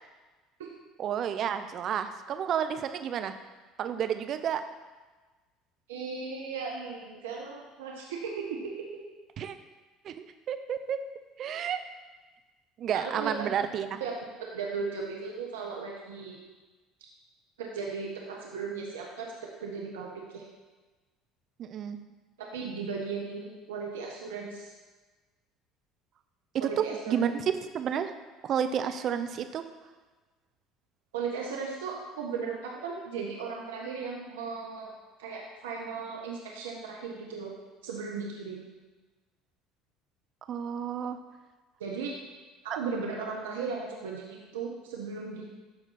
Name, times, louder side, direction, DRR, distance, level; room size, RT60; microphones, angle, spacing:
voice 1, 1.0-3.3 3.8-4.6 9.4-9.6 10.0-11.0 11.4-11.8 12.8-14.0 21.6-22.0 26.6-27.4 27.7-28.1 28.4-29.6 40.5-41.2 42.7-42.8, right 8 dB, 50° right, 9 dB, 0.7 m, -31 dB
voice 2, 5.9-8.9 12.9-13.5 14.0-14.1 14.5-16.4 17.6-19.3 19.6-20.4 22.4-24.7 26.6-27.1 31.1-34.9 35.2-37.5 37.8-38.6 41.8-42.1 42.6-45.4, right 5 dB, 85° right, -1 dB, 1.2 m, -36 dB
13.0 x 4.5 x 4.3 m, 1.3 s
hypercardioid pair, 70°, 0 cm